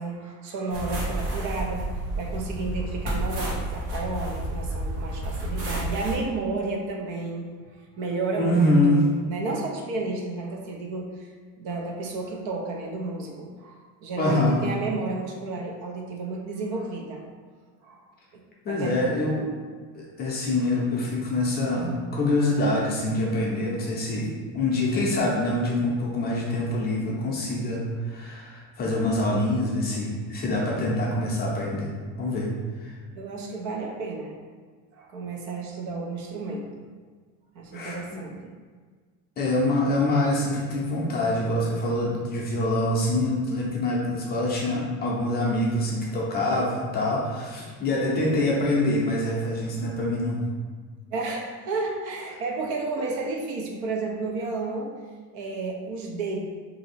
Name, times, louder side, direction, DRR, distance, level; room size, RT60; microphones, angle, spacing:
voice 1, 0.0-1.9 2.2-17.2 17.8-18.0 18.3-18.9 33.1-34.4 34.9-36.8 37.5-38.5 51.1-54.9 55.3-56.4, right 3 dB, 55° right, 0 dB, 0.6 m, -32 dB
sound 1, 0.7-6.1, right 1 dB, 75° right, 1.2 m, -30 dB
voice 2, 8.4-9.0 14.2-14.6 18.6-19.6 19.9-31.9 32.2-32.5 32.8-32.9 37.7-38.2 39.4-50.4 53.0-53.1, left 1 dB, 25° left, -4 dB, 0.5 m, -25 dB
2.8 x 2.6 x 4.1 m, 1.5 s
cardioid pair, 170°, 37 cm